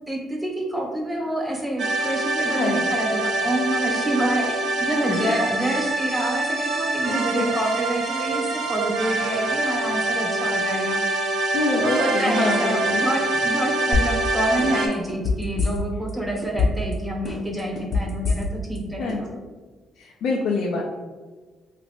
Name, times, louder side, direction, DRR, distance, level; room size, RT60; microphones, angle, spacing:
voice 1, 0.1-11.0 11.8-19.3, right 1 dB, 5° right, 0 dB, 0.4 m, -27 dB
sound 1, 1.8-14.9, right 2 dB, 70° right, 0.6 m, -25 dB
voice 2, 7.0-7.6 11.5-13.0 19.0-19.4 20.0-20.8, left 3 dB, 70° left, -1 dB, 0.4 m, -26 dB
sound 2, 13.9-14.3 14.6-16.1 16.4-16.9 17.3-18.8 19.1-19.2, left 4 dB, 35° left, 0.8 m, -23 dB
3.0 x 2.4 x 3.2 m, 1.3 s
cardioid pair, 130°, 0 cm